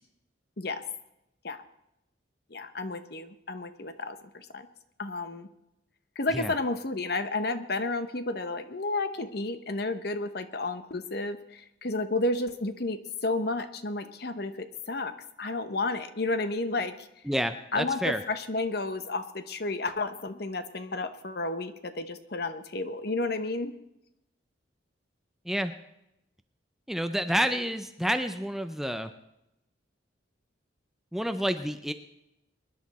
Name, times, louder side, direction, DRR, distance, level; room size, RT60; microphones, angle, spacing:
voice 1, 2.5-4.7 5.0-5.5 6.2-17.1 17.7-23.7, left 2 dB, 55° left, 10 dB, 0.9 m, -32 dB
voice 2, 17.3-18.2 25.5-25.7 26.9-29.1 31.1-31.9, equal, ahead, 8 dB, 0.5 m, -29 dB
24.0 x 10.5 x 4.2 m, 0.86 s
head